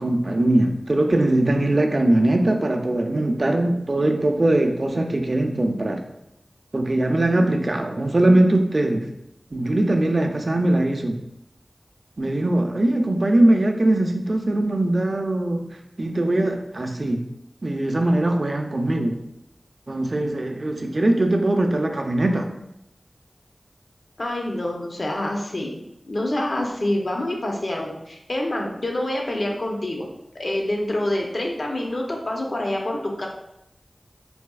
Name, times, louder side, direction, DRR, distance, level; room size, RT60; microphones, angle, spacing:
voice 1, 0.0-6.0 6.7-9.1 9.5-11.2 12.2-15.7 16.0-17.2 17.6-19.2 19.9-22.5, right 1 dB, 50° right, 3 dB, 0.4 m, -21 dB
voice 2, 24.2-25.8 26.1-30.1 30.4-33.3, left 1 dB, 60° left, 0 dB, 0.6 m, -26 dB
4.0 x 2.7 x 2.3 m, 0.81 s
wide cardioid pair, 65°, 0 cm